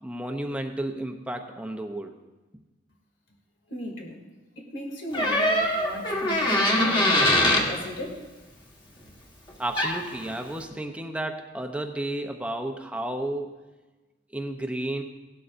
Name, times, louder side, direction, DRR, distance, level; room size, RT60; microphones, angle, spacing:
voice 1, 0.0-2.1 9.6-13.5 14.3-15.0, right 1 dB, 5° right, 4 dB, 0.6 m, -32 dB
voice 2, 3.7-4.2 4.6-8.2, left 1 dB, 70° left, -1 dB, 2.4 m, -37 dB
Door, 5.1-7.7 9.5-9.6 9.8-10.1, left 1 dB, 25° left, 1.5 m, -22 dB
17.0 x 12.0 x 2.6 m, 1.2 s
head